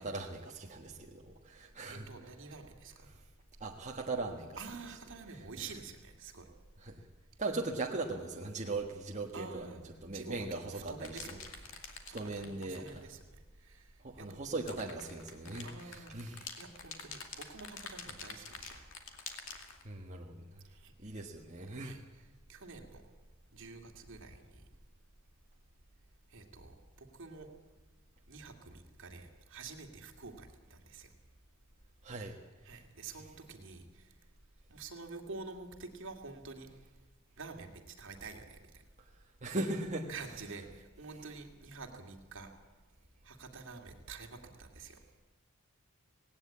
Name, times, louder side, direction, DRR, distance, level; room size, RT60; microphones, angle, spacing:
voice 1, 0.0-2.0 3.6-4.6 6.8-7.0 7.4-9.7 10.0-11.3 12.1-13.0 14.0-16.5 19.8-20.6 21.0-21.9 32.0-32.4 39.4-40.1, right 2 dB, 35° right, 0 dB, 1.4 m, -39 dB
voice 2, 1.9-3.1 4.6-6.5 9.3-9.8 10.1-11.7 12.1-13.2 13.6-14.8 15.6-16.1 16.6-18.8 20.6-21.2 21.8-22.2 22.5-23.0 23.5-24.7 26.3-27.5 28.3-31.1 32.6-34.1 34.7-36.7 37.4-38.8 40.1-42.5 43.2-45.0, right 4 dB, 65° right, 3 dB, 2.4 m, -48 dB
sound 1, 11.0-13.0 14.5-19.8, left 5 dB, 70° left, 2.5 m, -47 dB
18.0 x 18.0 x 8.6 m, 1.3 s
head